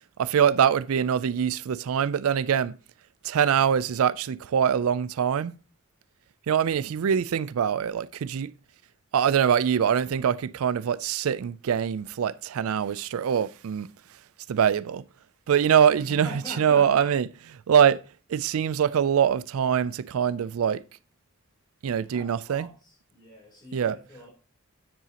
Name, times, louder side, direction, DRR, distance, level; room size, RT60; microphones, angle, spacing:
voice 1, 0.2-2.8 3.2-5.5 6.5-8.5 9.1-13.9 14.5-15.0 15.5-16.3 16.6-17.3 17.7-18.0 18.3-20.8 21.8-22.7 23.7-24.0, right 8 dB, 85° right, 0.4 m, -23 dB
voice 2, 15.9-17.1 22.0-24.3, left 1 dB, 20° left, 3.3 m, -43 dB
9.7 x 7.5 x 2.9 m
head